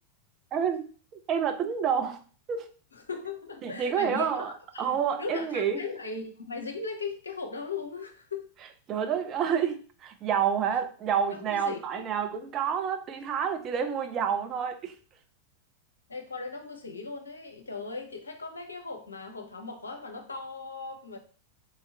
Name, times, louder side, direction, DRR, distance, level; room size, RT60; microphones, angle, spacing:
voice 1, 0.5-0.9 1.3-2.2 2.5-2.7 3.6-4.5 4.8-5.8 8.9-14.9, right 7 dB, 30° right, 0.5 m, -28 dB
voice 2, 2.9-8.5 11.3-12.0 16.1-21.2, left 4 dB, 75° left, 0.7 m, -38 dB
3.4 x 3.0 x 3.3 m
figure-of-eight pair, 90°, 0 cm